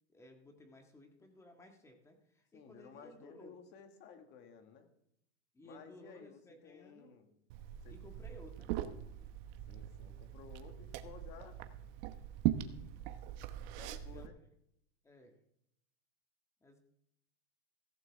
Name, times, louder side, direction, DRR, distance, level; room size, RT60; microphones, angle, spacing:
voice 1, 0.1-3.6 5.5-7.2 7.9-8.7 14.1-14.3 15.0-15.4 16.6-16.8, left 1 dB, 10° left, 3 dB, 1.8 m, -57 dB
voice 2, 2.5-4.9 5.6-7.3 7.8-8.0 9.7-11.6 13.8-14.4, left 7 dB, 30° left, 6 dB, 2.0 m, -55 dB
Liquid, 7.5-14.3, right 13 dB, 40° right, 1.0 m, -40 dB
16.0 x 14.0 x 3.6 m, 0.76 s
supercardioid pair, 155°, 35 cm